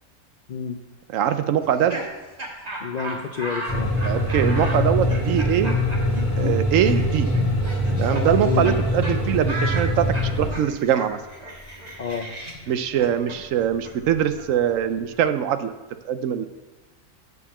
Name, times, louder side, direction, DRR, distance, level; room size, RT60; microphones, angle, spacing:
voice 1, 1.1-2.0 4.0-5.8 6.4-7.3 8.0-11.2 12.7-15.7 16.0-16.5, right 9 dB, 75° right, 10 dB, 0.9 m, -22 dB
Laughter, 1.6-8.8 9.0-9.1 9.5-15.2, right 1 dB, 30° right, 1.4 m, -35 dB
voice 2, 2.8-3.9 8.1-8.9 12.0-12.3, left 6 dB, 60° left, 3 dB, 0.5 m, -29 dB
sound 1, 3.7-10.5, left 1 dB, 5° left, 3.0 m, -23 dB
8.1 x 4.8 x 7.0 m, 1.1 s
omnidirectional pair, 1.4 m